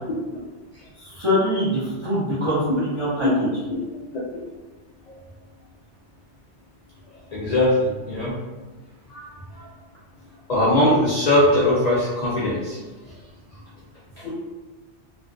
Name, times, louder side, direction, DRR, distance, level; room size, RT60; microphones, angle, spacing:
voice 1, 1.0-3.5, equal, 35° right, -10 dB, 0.5 m, -24 dB
voice 2, 3.4-3.8 5.1-5.2 7.3-8.3 9.1-9.7 10.5-12.8 14.2-14.3, left 1 dB, 65° left, -7 dB, 0.4 m, -21 dB
2.4 x 2.2 x 2.3 m, 1.2 s
omnidirectional pair, 1.2 m